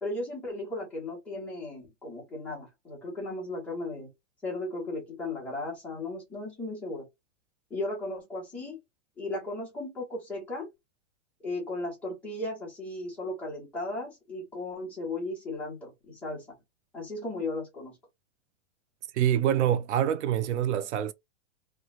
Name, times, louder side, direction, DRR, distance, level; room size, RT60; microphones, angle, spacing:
voice 1, 0.0-4.1 4.4-7.0 7.7-8.8 9.2-10.7 11.4-16.5 16.9-18.0, left 2 dB, 5° left, 0.8 m, -36 dB
voice 2, 19.1-21.1, right 10 dB, 75° right, 0.5 m, -25 dB
3.0 x 2.2 x 2.4 m
supercardioid pair, 180°, 35 cm